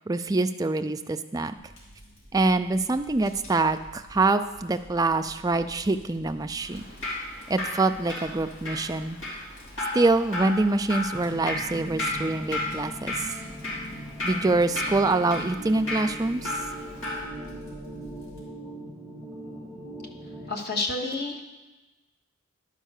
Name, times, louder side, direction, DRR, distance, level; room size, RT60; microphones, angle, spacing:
voice 1, 0.0-1.5 2.3-6.8 7.5-9.2 9.9-13.3 14.2-16.5, right 2 dB, 15° right, 8 dB, 0.3 m, -25 dB
Fire, 1.6-18.4, equal, 80° left, 3.3 m, -50 dB
Drip, 6.6-17.2, left 2 dB, 60° left, 3.3 m, -34 dB
sound 1, 11.1-20.5, right 1 dB, 15° left, 1.6 m, -40 dB
voice 2, 20.5-21.6, left 2 dB, 45° left, 2 dB, 1.3 m, -30 dB
11.0 x 5.4 x 6.5 m, 1.2 s
head